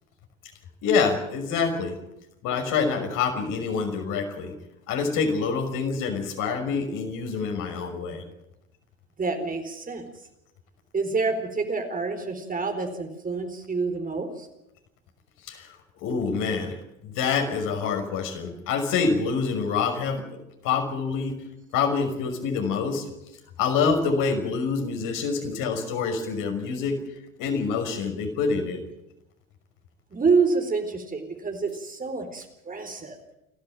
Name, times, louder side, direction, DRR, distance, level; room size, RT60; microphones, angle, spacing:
voice 1, 0.8-2.0 2.4-4.5 4.9-8.2 15.5-15.8 16.0-20.2 20.6-21.3 21.7-23.0 23.6-27.0 27.4-28.8, left 5 dB, 55° left, 5 dB, 6.0 m, -26 dB
voice 2, 9.2-10.1 10.9-14.5 30.1-33.2, right 4 dB, 20° right, 6 dB, 4.1 m, -27 dB
29.5 x 11.5 x 9.1 m, 0.87 s
hypercardioid pair, 85°, 40 cm